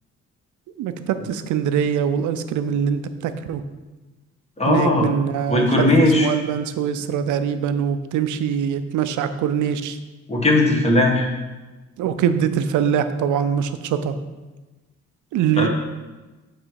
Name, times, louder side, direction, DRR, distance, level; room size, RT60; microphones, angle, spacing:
voice 1, 0.8-3.6 4.7-5.9 6.2-10.0 12.0-14.1 15.3-15.7, right 8 dB, 75° right, 10 dB, 0.5 m, -23 dB
voice 2, 4.6-5.1 5.5-6.3 10.3-11.3 15.6-15.7, left 1 dB, 20° left, -1 dB, 1.3 m, -17 dB
7.8 x 3.3 x 4.7 m, 1.2 s
cardioid pair, 90°, 30 cm